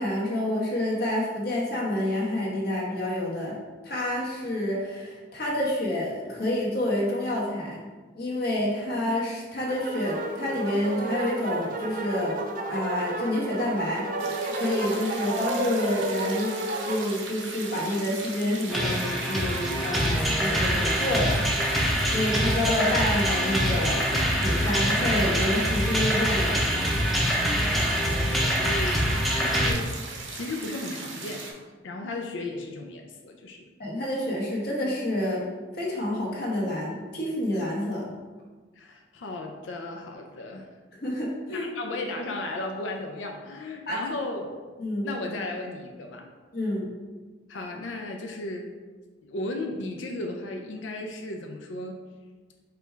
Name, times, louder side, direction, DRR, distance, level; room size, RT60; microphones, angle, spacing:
voice 1, 0.0-3.6 3.8-7.8 8.1-12.4 12.7-14.1 14.4-16.5 16.8-21.4 22.1-24.1 24.4-26.6 33.8-35.4 35.8-38.1 41.0-41.7 43.9-44.0 44.8-45.1 46.5-46.9, left 1 dB, 55° left, -4 dB, 1.2 m, -28 dB
sound 1, 9.7-17.1, right 2 dB, 45° right, 0.4 m, -32 dB
sound 2, 14.2-31.5, right 4 dB, 85° right, 0.7 m, -39 dB
sound 3, 18.7-29.7, equal, ahead, 0.6 m, -25 dB
voice 2, 27.7-30.0 30.3-31.5 31.8-33.6 38.8-40.7 41.5-44.5 45.0-46.3 47.5-48.7 49.2-52.0, left 2 dB, 85° left, 3 dB, 0.5 m, -35 dB
5.0 x 2.3 x 4.5 m, 1.4 s
head